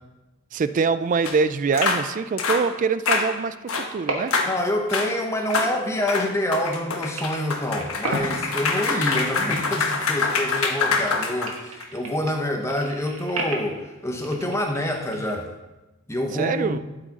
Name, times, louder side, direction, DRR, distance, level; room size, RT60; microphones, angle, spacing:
voice 1, 0.5-4.3 16.3-16.8, right 5 dB, 40° right, 14 dB, 0.3 m, -24 dB
sound 1, 1.3-1.4 1.7-2.0 2.4-2.6 3.1-3.3 3.7-3.9 4.3-4.5 4.9-5.1 5.5-5.7 6.1-11.8, left 4 dB, 85° left, 1.1 m, -25 dB
sound 2, 3.8-4.6 4.9-6.9 7.2-10.7 11.0-15.3, right 2 dB, 90° right, 1.4 m, -35 dB
voice 2, 4.4-15.5 16.1-16.8, left 1 dB, 15° left, 3 dB, 0.9 m, -27 dB
12.0 x 4.9 x 4.1 m, 1.1 s
head